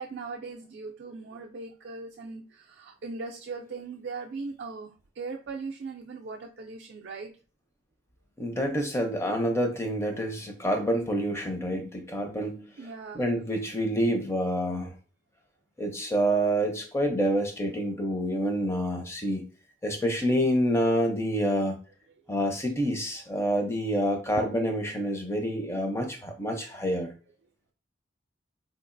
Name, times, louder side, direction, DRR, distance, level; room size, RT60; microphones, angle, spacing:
voice 1, 0.0-4.9 5.2-7.3 12.8-13.3 22.4-22.5 24.3-24.4, right 4 dB, 55° right, 1 dB, 0.3 m, -39 dB
voice 2, 8.4-12.7 13.1-14.9 15.8-19.4 19.8-21.8 22.3-27.1, equal, 15° left, 4 dB, 0.5 m, -27 dB
3.8 x 2.3 x 2.5 m, 0.37 s
head